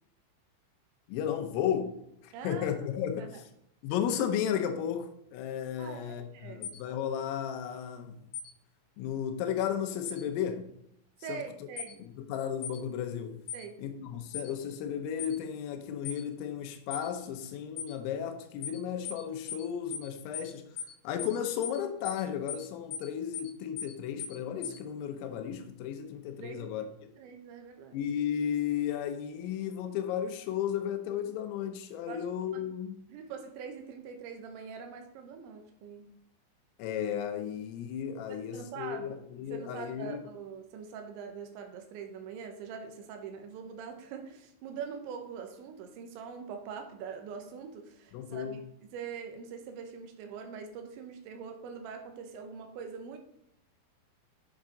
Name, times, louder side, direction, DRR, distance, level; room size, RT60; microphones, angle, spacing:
voice 1, 1.1-2.0 2.2-3.5 3.8-8.2 9.0-10.7 11.3-11.4 12.0-13.4 13.8-20.6 21.0-26.9 27.9-33.0 36.8-40.3 48.1-48.6, left 9 dB, 85° left, 3.4 m, -34 dB
voice 2, 2.3-2.7 3.2-3.3 5.8-6.7 11.2-12.0 13.5-13.8 26.4-26.7 27.2-28.0 32.1-32.2 32.5-32.6 33.1-36.1 38.3-39.1 39.5-53.2, right 6 dB, 75° right, 2.9 m, -43 dB
sound 1, 6.6-6.8 8.3-8.5 10.1-10.2 11.8-11.9 12.6-12.8 13.5-13.7 14.3-14.5 15.2-15.4 16.1-16.2 16.9-17.1 17.8-17.9 18.6-18.8 19.1-19.2 19.5-19.7 19.9-20.1 20.3-20.5 20.8-20.9 21.2-21.4 21.6-21.8 22.1-22.2 22.5-22.7 22.9-23.1 23.3-23.5 23.8-23.9 24.2-24.4 24.6-24.8, left 8 dB, 65° left, 3.1 m, -38 dB
7.4 x 7.1 x 3.8 m
omnidirectional pair, 6.0 m